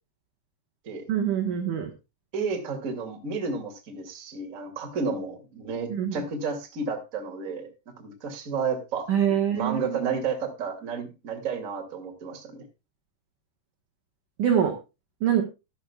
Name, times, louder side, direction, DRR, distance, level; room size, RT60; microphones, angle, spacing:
voice 1, 1.1-1.9 5.9-6.2 9.1-10.0 14.4-14.8 15.2-15.4, right 9 dB, 70° right, 2 dB, 1.9 m, -24 dB
voice 2, 2.3-7.7 8.0-9.1 9.5-12.6, right 5 dB, 35° right, 3 dB, 1.3 m, -31 dB
13.0 x 12.5 x 2.3 m, 0.27 s
omnidirectional pair, 5.7 m